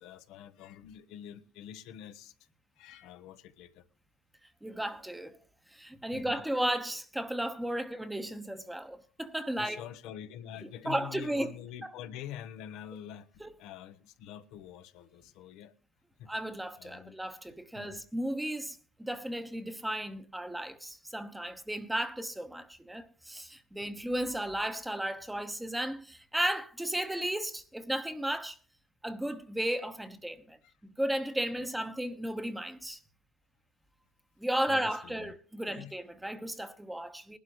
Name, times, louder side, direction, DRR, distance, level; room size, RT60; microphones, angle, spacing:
voice 1, 0.0-2.3 2.8-3.9 6.1-6.4 9.6-15.7 16.2-16.3 16.8-17.2 17.7-18.0 29.2-29.4 30.6-30.7 31.6-31.7 34.7-35.3 35.7-35.9, left 10 dB, 75° left, 0.9 m, -46 dB
voice 2, 4.6-5.4 5.7-9.8 10.8-11.5 11.8-11.9 13.4-13.5 16.3-28.6 29.0-30.6 30.8-33.0 34.4-37.4, right 1 dB, 5° right, 1.1 m, -34 dB
19.5 x 12.0 x 3.1 m
supercardioid pair, 105°, 0 cm